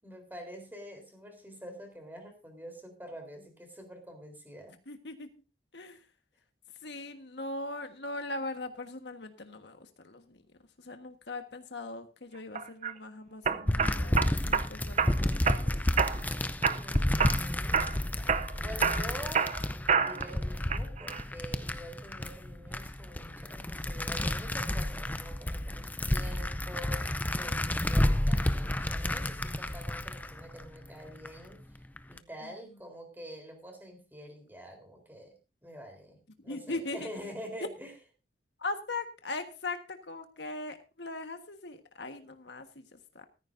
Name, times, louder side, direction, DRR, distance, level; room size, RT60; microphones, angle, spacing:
voice 1, 0.0-4.8 16.6-19.5 19.9-27.1 27.3-31.6 32.1-37.9, equal, 10° right, 3 dB, 3.9 m, -46 dB
voice 2, 4.9-5.3 5.7-6.0 6.8-10.4 10.8-16.2 32.4-32.5 36.4-37.1 38.6-43.2, left 2 dB, 75° left, 6 dB, 1.5 m, -40 dB
sound 1, 12.6-12.9 13.5-14.7 15.0-15.6 16.0-16.3 16.6-17.4 17.7-18.0 18.3-20.3 20.7-21.2, right 6 dB, 40° right, 0.7 m, -28 dB
sound 2, 13.7-31.3 31.8-32.2, left 1 dB, 10° left, 0.5 m, -31 dB
15.0 x 14.0 x 2.7 m, 0.31 s
head